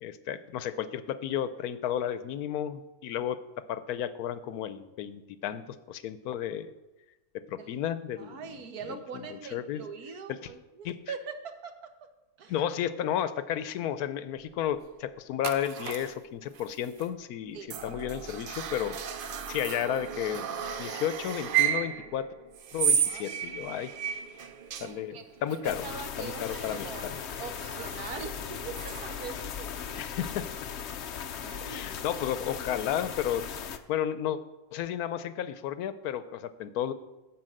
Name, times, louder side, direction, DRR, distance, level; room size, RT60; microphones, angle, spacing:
voice 1, 0.0-3.4 3.7-5.6 5.9-6.7 7.5-8.4 8.9-9.8 10.3-10.5 10.8-10.9 12.5-19.0 19.2-20.5 20.8-22.3 22.7-23.9 24.8-25.8 26.2-27.2 30.0-30.4 31.6-33.4 33.9-34.4 34.7-36.9, left 10 dB, 80° left, 13 dB, 1.1 m, -33 dB
voice 2, 8.2-11.7 12.4-12.6 17.5-17.8 23.0-23.8 24.8-25.2 25.5-27.1 27.4-30.0 31.4-32.1, right 6 dB, 90° right, 7 dB, 1.5 m, -42 dB
sound 1, 15.4-16.2 16.5-17.1 17.7-29.4, right 8 dB, 60° right, 0.6 m, -34 dB
sound 2, 25.6-33.8, left 8 dB, 60° left, 0.7 m, -38 dB
11.5 x 4.7 x 7.7 m, 1.1 s
omnidirectional pair, 1.6 m